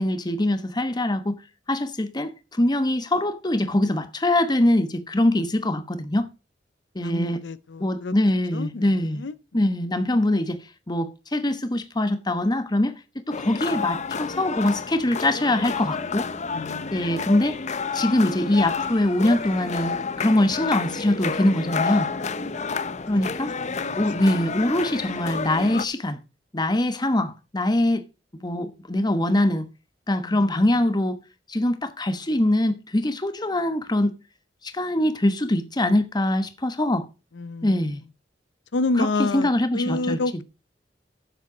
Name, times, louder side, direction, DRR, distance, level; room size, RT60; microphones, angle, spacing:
voice 1, 0.0-1.4 1.7-6.3 6.9-7.4 7.8-9.2 9.5-10.6 10.9-16.3 16.9-17.6 17.9-22.1 23.1-23.5 24.0-26.2 26.5-28.0 28.4-29.7 30.1-31.2 31.5-34.1 34.6-37.1 37.6-38.0 39.0-39.1 39.3-40.2, left 1 dB, 25° left, 1.1 m, -23 dB
voice 2, 7.0-8.1 8.5-9.3 9.6-10.4 16.5-17.4 23.2-23.3 23.9-24.0 30.3-30.7 37.3-37.9 38.7-40.4, left 3 dB, 80° left, 0.6 m, -30 dB
sound 1, 13.3-25.8, left 5 dB, 40° left, 0.7 m, -30 dB
8.9 x 7.5 x 5.1 m
head